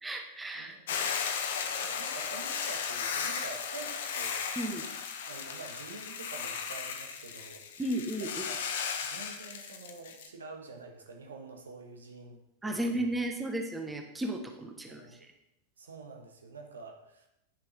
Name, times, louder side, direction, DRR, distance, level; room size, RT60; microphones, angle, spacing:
voice 1, 0.0-0.7 4.6-4.9 7.8-8.4 12.6-15.3, right 1 dB, 10° right, 4 dB, 1.1 m, -34 dB
Hiss / Boiling, 0.9-10.3, left 6 dB, 55° left, 0.9 m, -35 dB
voice 2, 1.8-4.4 5.3-7.8 8.2-8.7 9.0-12.4 12.6-12.8 14.8-15.3 15.8-17.3, right 3 dB, 70° right, 3 dB, 1.4 m, -47 dB
9.8 x 6.9 x 4.2 m, 0.86 s
figure-of-eight pair, 90°, 0 cm